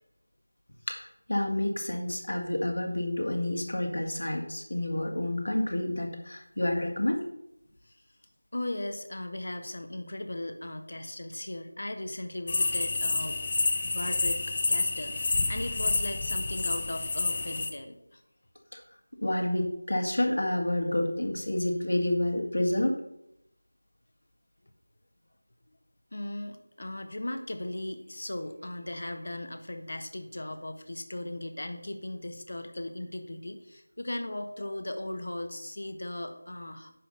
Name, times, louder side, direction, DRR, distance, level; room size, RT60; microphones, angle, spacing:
voice 1, 0.9-7.2 18.7-18.8 19.2-22.9, left 1 dB, 75° left, 2 dB, 2.2 m, -29 dB
voice 2, 8.5-13.4 13.8-18.2 26.1-36.9, left 1 dB, 60° left, 7 dB, 1.2 m, -37 dB
sound 1, 12.5-17.7, left 3 dB, 30° left, 0.8 m, -29 dB
10.0 x 3.7 x 6.6 m, 0.81 s
figure-of-eight pair, 170°, 0 cm